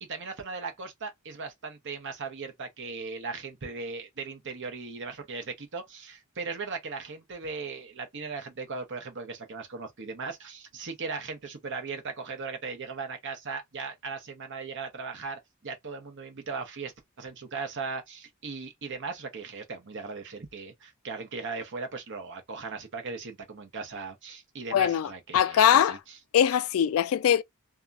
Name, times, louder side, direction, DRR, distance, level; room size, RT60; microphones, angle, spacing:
voice 1, 0.1-26.0, right 4 dB, 55° right, 0.9 m, -38 dB
voice 2, 24.7-26.0 26.3-27.4, left 9 dB, 65° left, 0.3 m, -22 dB
2.9 x 2.3 x 2.4 m
head